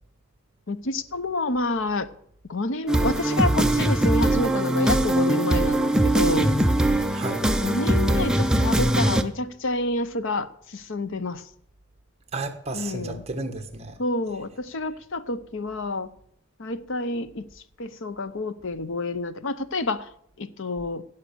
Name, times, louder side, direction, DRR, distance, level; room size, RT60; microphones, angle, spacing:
voice 1, 0.7-2.1 2.5-6.5 7.6-10.5 10.7-11.4 12.7-13.2 14.0-16.1 16.6-17.4 17.8-20.0 20.4-21.0, left 2 dB, 60° left, 0.8 m, -28 dB
sound 1, 2.9-9.2, right 1 dB, 5° right, 0.6 m, -21 dB
voice 2, 7.1-7.5 12.3-14.0, right 2 dB, 30° right, 1.3 m, -32 dB
16.0 x 5.8 x 6.8 m
head